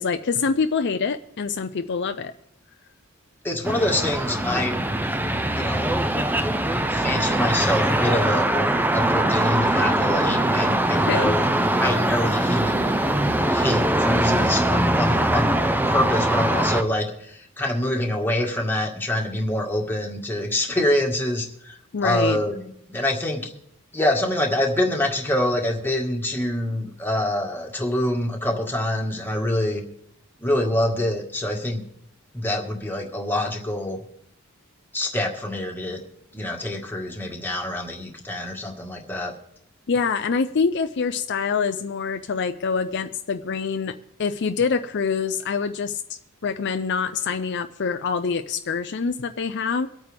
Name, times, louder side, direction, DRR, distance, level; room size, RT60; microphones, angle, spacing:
voice 1, 0.0-2.3 11.0-11.3 21.9-22.4 39.9-46.0 46.4-49.9, left 5 dB, 50° left, 8 dB, 0.5 m, -25 dB
voice 2, 3.4-4.8 5.2-6.0 6.9-11.5 11.8-12.8 13.5-15.6 15.9-21.8 22.0-23.5 23.9-29.8 30.4-31.8 32.3-34.0 34.9-36.0 36.3-39.3, left 1 dB, 10° left, 1 dB, 1.7 m, -25 dB
sound 1, 3.6-16.8, right 1 dB, 10° right, 0.6 m, -22 dB
24.0 x 8.9 x 3.4 m, 0.73 s
head